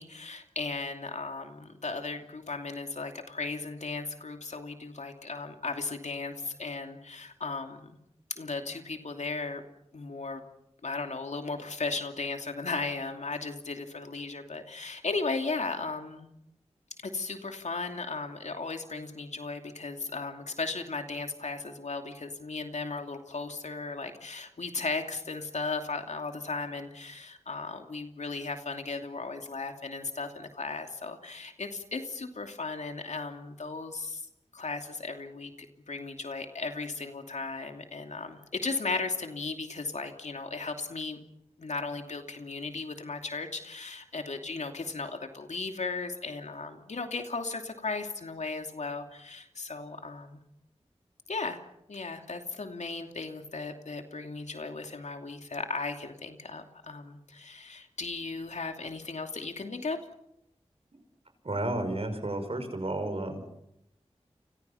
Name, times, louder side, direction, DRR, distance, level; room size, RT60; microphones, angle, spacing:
voice 1, 0.0-8.0 8.3-9.6 9.9-10.4 10.8-16.3 17.0-34.2 34.5-41.2 41.6-50.4 51.3-51.6 51.9-60.0, left 3 dB, 80° left, 5 dB, 2.8 m, -36 dB
voice 2, 61.4-63.4, right 2 dB, 55° right, 7 dB, 5.9 m, -32 dB
30.0 x 26.0 x 5.8 m, 0.83 s
wide cardioid pair, 55°, 12 cm